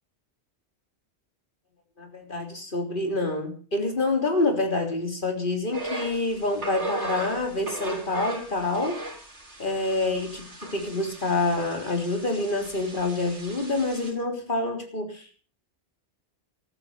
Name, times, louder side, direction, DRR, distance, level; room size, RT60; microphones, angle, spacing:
voice 1, 2.0-9.0 9.6-15.4, left 2 dB, 45° left, 4 dB, 3.8 m, -27 dB
sound 1, 5.7-14.1, right 1 dB, 75° right, 5.0 m, -38 dB
14.0 x 13.5 x 6.7 m, 0.40 s
omnidirectional pair, 1.2 m